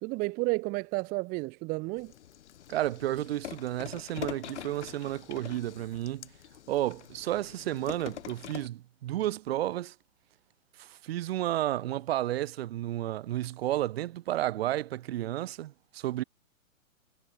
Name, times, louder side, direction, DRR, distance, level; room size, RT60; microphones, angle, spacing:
voice 1, 0.0-2.1, right 25 dB, 20° right, 0.8 m, -31 dB
sound 1, 2.0-8.7, left 11 dB, 55° left, 5.1 m, -44 dB
voice 2, 2.7-6.3 6.7-9.9 10.8-16.2, right 14 dB, 45° right, 2.8 m, -32 dB
figure-of-eight pair, 120°, 41 cm